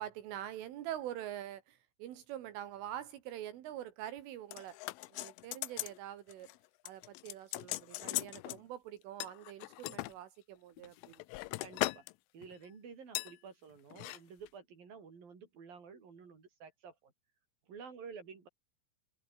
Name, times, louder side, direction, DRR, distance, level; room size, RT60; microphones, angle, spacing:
voice 1, 0.0-4.8 5.1-6.5 6.8-11.2, right 12 dB, 80° right, 4.5 m, -45 dB
plundering-the-toolbox, 4.5-6.0 6.3-6.6 6.9-8.6 9.2-10.1 10.8-12.1 12.4-12.6 13.2-13.3 13.9-14.2 14.5-14.6, left 21 dB, 90° left, 3.3 m, -39 dB
voice 2, 11.6-12.1 12.3-17.1 17.7-18.5, right 5 dB, 45° right, 7.1 m, -51 dB
omnidirectional pair, 5.6 m